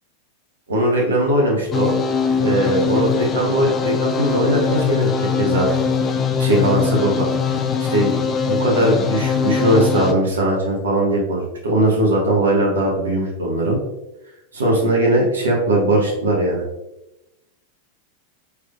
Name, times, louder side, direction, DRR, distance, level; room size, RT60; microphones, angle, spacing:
voice 1, 0.7-1.9 2.4-5.7 6.4-7.3 7.8-8.1 8.5-13.8 14.5-16.6, right 1 dB, 70° right, -2 dB, 0.9 m, -19 dB
sound 1, 1.7-10.1, left 6 dB, 25° left, 0.3 m, -21 dB
3.4 x 3.3 x 2.3 m, 0.93 s
figure-of-eight pair, 90°, 0 cm